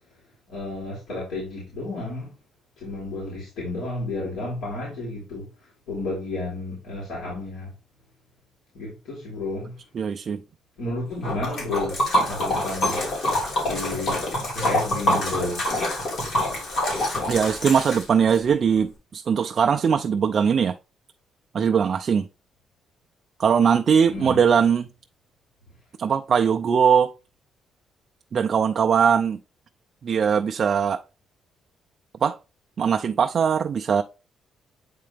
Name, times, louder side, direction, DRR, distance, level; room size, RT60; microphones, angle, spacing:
voice 1, 0.5-2.3 2.8-5.5 5.9-7.7 8.7-9.7 10.8-11.9 12.3-13.0 13.7-14.2 14.5-15.6 24.1-24.4, left 2 dB, 80° left, 3.5 m, -31 dB
voice 2, 9.9-10.4 17.3-20.7 21.5-22.3 23.4-24.9 26.0-27.1 28.3-29.4 30.0-31.0 32.2-32.4 32.8-34.0, right 7 dB, 40° right, 0.3 m, -20 dB
Liquid, 11.2-18.4, left 1 dB, 55° left, 3.2 m, -26 dB
8.6 x 3.7 x 3.4 m
cardioid pair, 150°, 0 cm